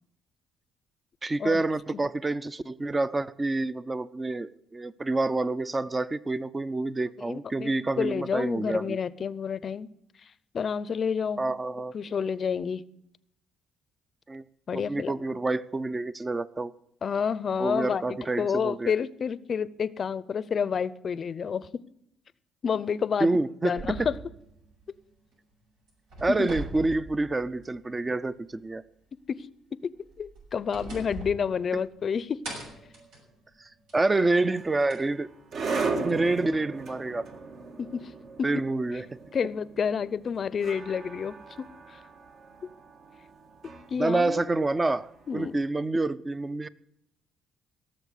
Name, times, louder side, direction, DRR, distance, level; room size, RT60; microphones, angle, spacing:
voice 1, 1.2-9.0 11.4-11.9 14.3-14.4 14.7-16.7 17.6-18.9 23.2-24.1 26.2-28.8 33.6-35.3 36.0-37.3 38.4-39.0 44.0-46.7, right 2 dB, 20° right, 0.6 m, -28 dB
voice 2, 7.2-9.9 10.5-11.5 11.9-12.8 14.7-15.4 17.0-21.7 22.6-23.3 23.6-24.1 26.3-26.5 29.3-29.5 30.2-32.4 35.9-36.2 37.8-38.1 38.4-38.5 39.3-42.0 43.9-44.4 45.3-45.6, left 6 dB, 45° left, 0.6 m, -29 dB
sound 1, 23.8-25.5 25.9-27.9 28.2-28.3 30.0-32.1 32.4-34.1 34.9-35.0 36.1-36.2, right 2 dB, 90° right, 6.5 m, -42 dB
sound 2, 34.3-45.5, right 4 dB, 60° right, 1.6 m, -37 dB
18.0 x 7.1 x 8.3 m
cardioid pair, 95°, 0 cm